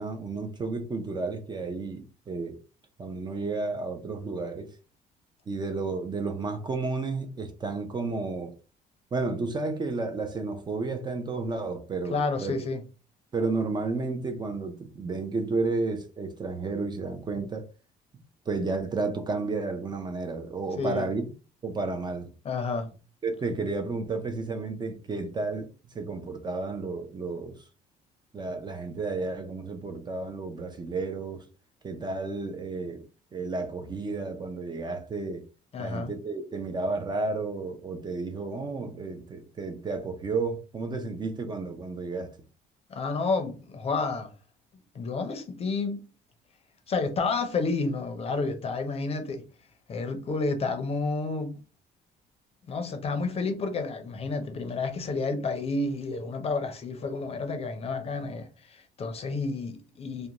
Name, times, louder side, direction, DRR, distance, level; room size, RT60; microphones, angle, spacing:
voice 1, 0.0-2.6 3.0-4.7 5.5-8.6 9.1-12.5 13.3-17.7 18.5-21.2 21.6-22.3 23.2-25.7 25.9-27.6 28.3-31.5 31.8-33.0 33.3-35.5 35.8-42.4, right 3 dB, 25° right, 0.4 m, -32 dB
voice 2, 12.1-12.8 20.8-21.1 22.4-22.9 35.7-36.1 42.9-44.3 44.9-46.0 46.9-49.4 49.9-51.6 52.7-60.3, left 3 dB, 35° left, 0.5 m, -30 dB
2.4 x 2.1 x 2.9 m
cardioid pair, 110°, 17 cm